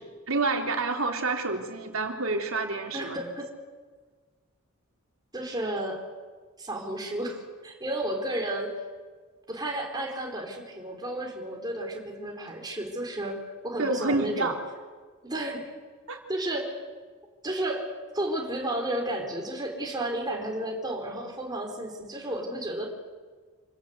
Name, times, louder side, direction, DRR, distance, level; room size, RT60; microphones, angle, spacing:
voice 1, 0.3-3.2 13.8-14.6 16.1-16.2, right 3 dB, 75° right, 3 dB, 3.3 m, -28 dB
voice 2, 2.9-3.5 5.3-6.0 6.6-8.7 9.5-13.4 13.6-14.5 15.2-15.7 16.3-16.8 17.4-22.9, right 1 dB, 20° right, 0 dB, 4.5 m, -32 dB
28.5 x 19.0 x 8.3 m, 1.4 s
head